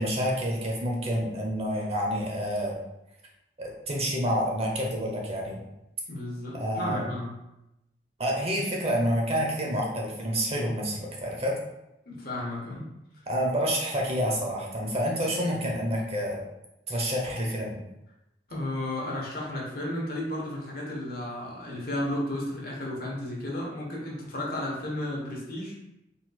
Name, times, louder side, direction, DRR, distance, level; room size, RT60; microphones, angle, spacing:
voice 1, 0.0-2.7 3.6-5.6 6.5-7.0 8.2-11.6 13.3-16.4 16.9-17.7, equal, 35° right, -1 dB, 0.9 m, -28 dB
voice 2, 6.1-7.4 12.1-12.9 18.5-25.8, left 1 dB, 60° left, -2 dB, 1.2 m, -33 dB
4.3 x 4.1 x 2.3 m, 0.89 s
head